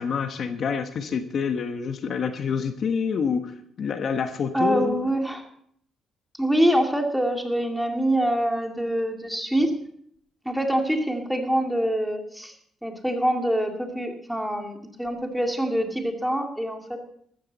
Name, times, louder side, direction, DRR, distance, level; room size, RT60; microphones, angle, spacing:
voice 1, 0.0-3.5 3.8-5.0, left 6 dB, 60° left, 7 dB, 1.2 m, -27 dB
voice 2, 4.5-5.4 6.4-9.8 10.4-12.5 12.8-17.0, right 1 dB, ahead, 2 dB, 2.5 m, -25 dB
14.0 x 14.0 x 4.2 m, 0.67 s
cardioid pair, 90°, 0 cm